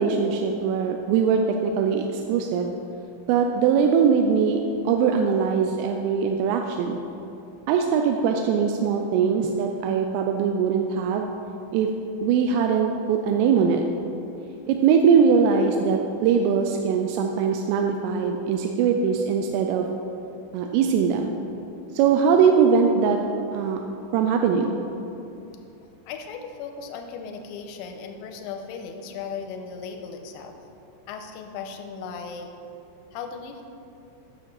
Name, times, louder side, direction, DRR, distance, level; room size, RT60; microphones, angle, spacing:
voice 1, 0.0-2.7 3.3-7.0 7.7-11.3 11.7-11.9 12.2-13.8 14.7-19.9 20.5-21.3 21.9-23.2 23.5-23.8 24.1-24.8, right 6 dB, 90° right, 3 dB, 3.2 m, -21 dB
voice 2, 26.1-30.5 31.1-32.5 33.1-33.6, left 6 dB, 85° left, 5 dB, 2.7 m, -36 dB
10.0 x 6.3 x 5.3 m, 2.8 s
omnidirectional pair, 5.7 m